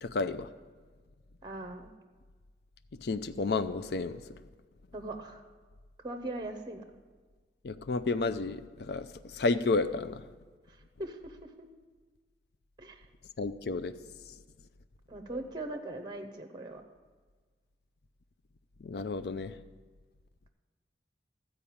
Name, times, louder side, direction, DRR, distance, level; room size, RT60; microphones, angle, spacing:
voice 1, 0.0-0.5 3.0-4.2 7.6-10.2 13.4-13.9 18.8-19.5, left 3 dB, 60° left, 12 dB, 0.4 m, -31 dB
voice 2, 1.4-1.9 4.9-5.4 6.0-6.8 11.0-11.7 12.8-13.0 15.1-16.8, right 2 dB, 25° right, 6 dB, 0.8 m, -40 dB
12.5 x 4.9 x 8.6 m, 1.4 s
head